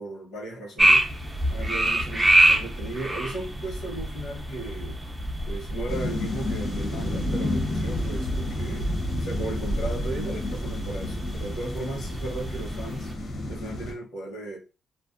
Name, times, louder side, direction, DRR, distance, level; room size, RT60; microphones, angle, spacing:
voice 1, 0.0-5.0 5.5-14.6, right 2 dB, 80° left, -1 dB, 1.2 m, -36 dB
sound 1, 0.8-13.1, right 1 dB, 15° right, 0.5 m, -27 dB
sound 2, 5.9-13.9, left 1 dB, 60° left, 0.8 m, -31 dB
2.5 x 2.1 x 2.4 m, 0.31 s
cardioid pair, 90°, 0 cm